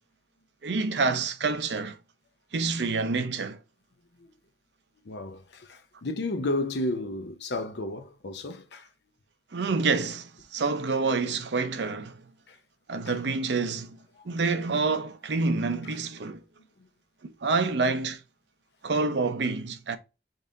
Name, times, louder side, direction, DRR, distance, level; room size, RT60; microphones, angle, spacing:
voice 1, 0.6-2.0 2.5-3.6 9.5-12.2 12.9-14.0 14.2-16.4 17.2-18.2 18.8-20.0, right 4 dB, 80° right, 0.6 m, -27 dB
voice 2, 5.0-8.9 12.5-12.6 13.1-13.2 14.2-14.3, left 2 dB, 80° left, 0.7 m, -32 dB
5.3 x 2.7 x 3.7 m
head